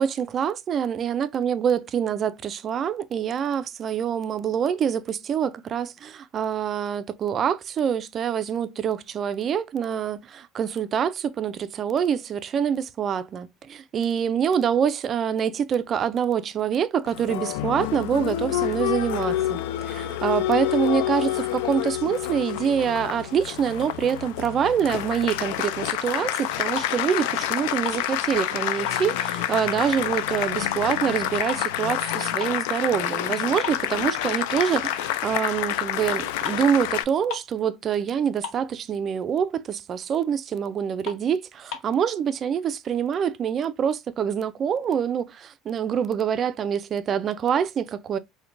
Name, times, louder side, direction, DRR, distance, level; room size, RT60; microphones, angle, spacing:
voice 1, 0.0-48.2, right 8 dB, 35° right, 0.3 m, -25 dB
Applause, 17.1-37.0, left 13 dB, 90° left, 0.3 m, -28 dB
sound 1, 26.7-27.2 27.5-28.6 28.8-30.4 30.7-32.7 33.1-33.2 33.6-34.7 35.1-35.3 36.1-36.2 36.4-36.7 37.0-37.1 37.3-37.6 37.9-38.0 38.2-39.1 39.5-39.6 40.0-40.1 40.6-40.7 41.0-42.0, left 7 dB, 65° left, 1.1 m, -38 dB
4.3 x 2.1 x 2.5 m
cardioid pair, 135°, 0 cm